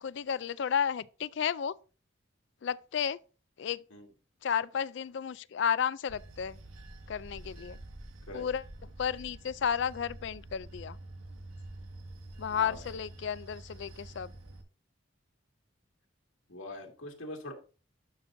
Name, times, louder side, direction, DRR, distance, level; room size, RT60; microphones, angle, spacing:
voice 1, 0.0-1.7 2.6-3.2 3.6-3.8 4.4-6.6 7.1-7.8 8.3-8.6 9.0-11.0 12.4-14.3, left 7 dB, 60° left, 0.3 m, -32 dB
Bell / Train, 6.1-14.6, right 1 dB, 85° right, 1.5 m, -48 dB
voice 2, 12.5-12.9 16.5-17.5, left 1 dB, 80° left, 2.1 m, -43 dB
12.0 x 6.0 x 2.6 m
head